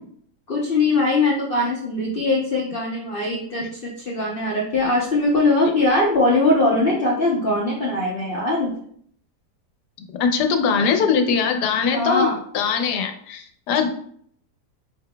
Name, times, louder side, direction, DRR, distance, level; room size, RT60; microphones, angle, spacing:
voice 1, 0.5-8.7 11.9-12.4, left 2 dB, 55° left, -3 dB, 0.6 m, -21 dB
voice 2, 10.2-12.3 12.5-13.9, left 6 dB, 75° left, 6 dB, 1.2 m, -21 dB
5.9 x 3.8 x 2.2 m, 0.62 s
omnidirectional pair, 1.8 m